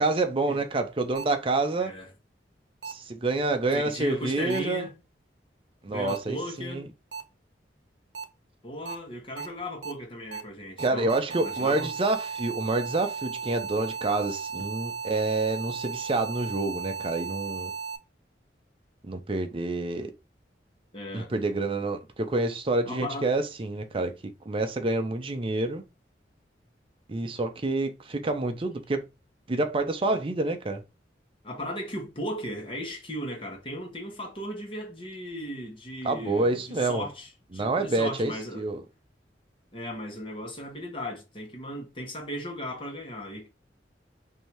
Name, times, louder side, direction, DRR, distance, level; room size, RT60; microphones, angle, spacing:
voice 1, 0.0-1.9 2.9-4.9 5.8-6.8 10.8-17.7 19.0-20.1 21.1-24.1 24.5-25.8 27.1-29.0 29.5-30.8 36.0-37.1 37.5-38.8, right 2 dB, 30° right, 0.5 m, -28 dB
sound 1, 1.1-1.2 2.8-2.9 4.5-4.6 6.1-6.2 7.1-7.2 8.1-8.2 8.8-8.9 9.4-9.5 9.8-9.9 10.3-10.4 10.8-18.0, right 5 dB, 85° right, 0.7 m, -35 dB
voice 2, 1.8-2.1 3.7-4.9 5.9-6.9 8.6-11.9 20.9-21.3 22.9-23.3 31.4-38.7 39.7-43.5, equal, 30° left, 1.2 m, -37 dB
3.3 x 2.7 x 4.4 m
head